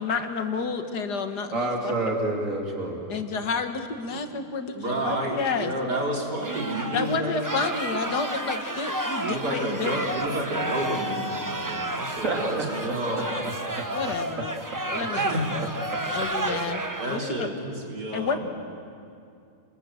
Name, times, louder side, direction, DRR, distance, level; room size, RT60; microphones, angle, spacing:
voice 1, 0.0-2.2 3.1-5.7 6.9-9.9 13.9-14.6 14.9-15.7 16.1-16.8 17.1-17.5 18.1-18.5, left 5 dB, 80° left, 7 dB, 2.1 m, -30 dB
voice 2, 1.5-3.1 12.2-14.5 14.7-14.8 15.9-16.0 16.5-16.6, right 2 dB, 50° right, 0 dB, 3.3 m, -30 dB
voice 3, 4.7-7.4 9.2-13.3 15.1-15.6 17.0-18.5, right 1 dB, 80° right, -2 dB, 4.4 m, -30 dB
sound 1, 6.4-17.3, right 1 dB, 15° right, 0.9 m, -31 dB
29.5 x 21.0 x 7.8 m, 2.4 s
omnidirectional pair, 1.7 m